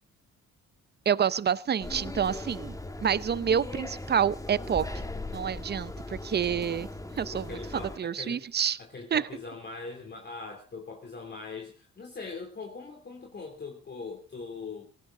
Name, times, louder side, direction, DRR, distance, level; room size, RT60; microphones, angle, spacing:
voice 1, 1.1-5.0 5.3-6.9 7.2-8.8 9.1-9.2, right 8 dB, 35° right, 19 dB, 0.7 m, -28 dB
sound 1, 1.8-8.0, left 2 dB, 10° left, 1.3 m, -39 dB
voice 2, 7.3-8.5 8.8-14.9, left 4 dB, 35° left, 2 dB, 3.0 m, -41 dB
18.0 x 16.5 x 3.8 m, 0.34 s
cardioid pair, 90°, 30 cm